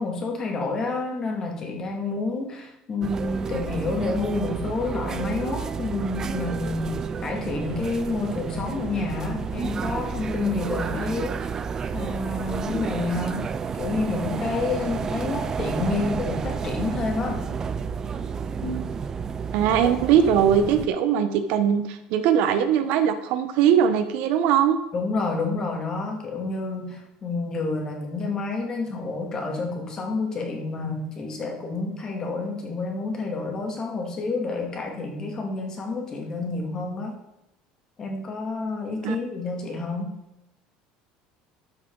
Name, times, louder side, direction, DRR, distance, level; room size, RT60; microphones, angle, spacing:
voice 1, 0.0-11.4 11.9-17.5 18.6-18.8 24.9-37.1 38.0-40.1, left 3 dB, 30° left, 1 dB, 2.3 m, -29 dB
sound 1, 3.0-20.9, right 6 dB, 25° right, 0.4 m, -31 dB
voice 2, 19.5-24.8 39.0-39.1, right 8 dB, 70° right, 9 dB, 1.0 m, -20 dB
12.5 x 5.9 x 4.0 m, 0.89 s
cardioid pair, 150°, 2 cm